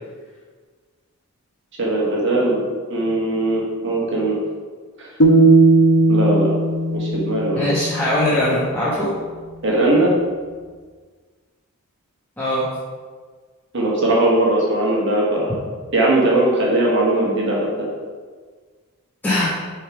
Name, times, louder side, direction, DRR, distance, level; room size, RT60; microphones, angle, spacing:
voice 1, 1.8-2.6 2.9-4.4 6.1-6.5 6.9-7.7 9.6-10.1 13.7-15.6 15.9-17.9, right 2 dB, 55° right, -4 dB, 1.4 m, -19 dB
sound 1, 5.2-8.3, right 2 dB, 65° left, 0.9 m, -16 dB
voice 2, 7.5-9.1 12.4-12.6 19.2-19.5, left 1 dB, 10° left, -10 dB, 1.0 m, -20 dB
6.3 x 3.7 x 4.8 m, 1.5 s
head